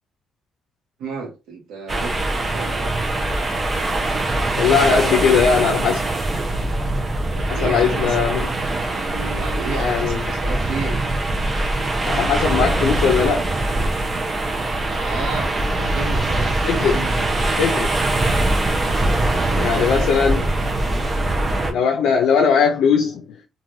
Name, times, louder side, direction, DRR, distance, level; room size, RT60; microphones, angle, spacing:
voice 1, 1.0-2.9 7.3-8.2 8.9-11.0 14.8-15.5 15.8-17.6 19.0-20.2, right 4 dB, 90° right, 1.1 m, -33 dB
sound 1, 1.9-21.7, right 2 dB, 30° right, 0.7 m, -22 dB
voice 2, 4.6-6.0 7.5-8.5 9.8-10.2 12.0-13.5 15.8-15.9 16.6-17.0 17.6-17.9 19.6-20.5 21.7-23.4, left 6 dB, 80° left, 0.5 m, -19 dB
3.1 x 2.5 x 2.6 m
cardioid pair, 90°, 0 cm